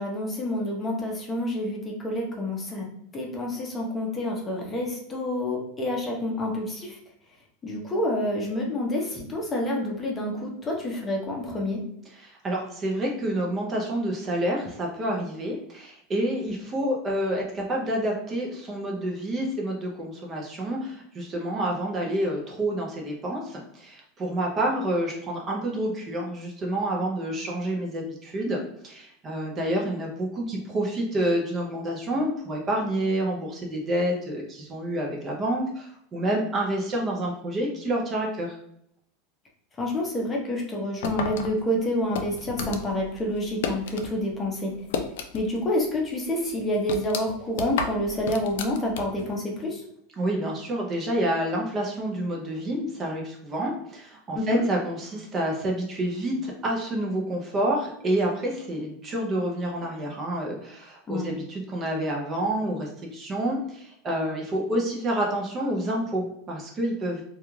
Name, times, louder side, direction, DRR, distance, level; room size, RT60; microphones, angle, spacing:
voice 1, 0.0-2.8 3.1-7.0 7.6-11.8 39.8-44.7 45.3-49.8 54.3-54.6 61.1-61.3, left 1 dB, 20° left, -1 dB, 0.6 m, -28 dB
voice 2, 12.1-38.6 50.2-67.2, right 1 dB, 25° right, -1 dB, 0.5 m, -28 dB
sound 1, 41.0-44.1 44.4-45.6 45.9-46.0 46.5-49.3, left 5 dB, 80° left, 0.3 m, -32 dB
2.3 x 2.3 x 3.0 m, 0.71 s
supercardioid pair, 145°, 0 cm